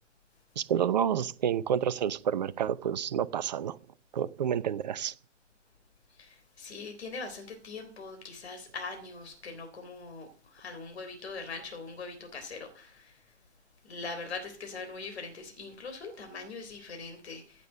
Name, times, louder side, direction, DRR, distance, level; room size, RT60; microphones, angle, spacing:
voice 1, 0.6-3.8 4.1-5.1, right 9 dB, 35° right, 0.7 m, -29 dB
voice 2, 6.1-13.3 13.8-17.7, left 4 dB, 55° left, 3.6 m, -42 dB
15.5 x 8.4 x 6.6 m
figure-of-eight pair, 125°, 37 cm